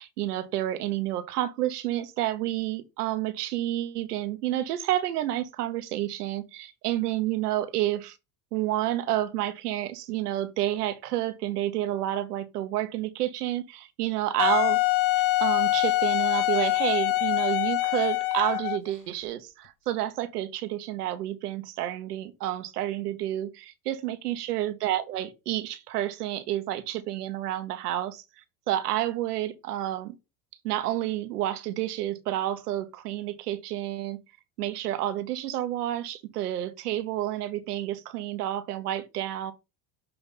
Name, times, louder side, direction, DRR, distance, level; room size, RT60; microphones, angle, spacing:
voice 1, 0.0-8.2 8.5-14.8 15.4-28.2 28.7-30.1 30.6-34.2 34.6-39.5, right 13 dB, 90° right, 0.9 m, -30 dB
Wind instrument woodwind instrument, 14.4-18.9, left 18 dB, 45° left, 0.5 m, -24 dB
6.7 x 3.4 x 4.1 m
hypercardioid pair, 85°, 45 cm